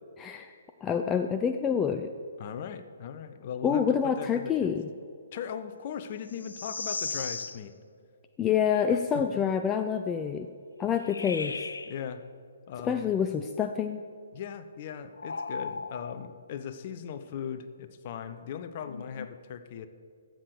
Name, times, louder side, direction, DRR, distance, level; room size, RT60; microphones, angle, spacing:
voice 1, 0.2-0.5 0.8-2.1 3.6-4.9 8.4-10.5 10.8-11.6 12.8-14.0, left 7 dB, 15° left, 7 dB, 0.4 m, -27 dB
voice 2, 2.4-4.7 5.3-7.7 8.9-9.2 10.8-11.0 11.9-12.2 12.7-13.1 14.3-19.9, left 8 dB, 40° left, 11 dB, 0.8 m, -39 dB
sound 1, 6.3-7.6 11.0-12.0 15.1-16.3 18.8-19.3, left 4 dB, 70° left, 0.5 m, -36 dB
13.0 x 7.8 x 6.7 m, 2.2 s
figure-of-eight pair, 130°, 0 cm